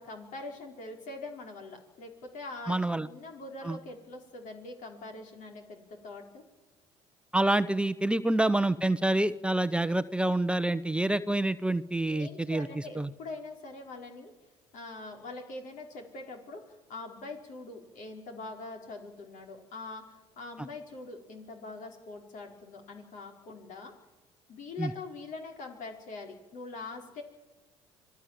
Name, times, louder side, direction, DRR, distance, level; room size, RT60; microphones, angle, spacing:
voice 1, 0.0-6.4 12.1-14.3 14.7-23.9 24.5-27.2, left 3 dB, 60° left, 3 dB, 5.0 m, -43 dB
voice 2, 2.7-3.1 3.6-3.8 7.3-13.1 24.8-24.9, right 1 dB, 5° right, 12 dB, 0.9 m, -27 dB
26.5 x 18.0 x 7.6 m, 1.2 s
hypercardioid pair, 65°, 14 cm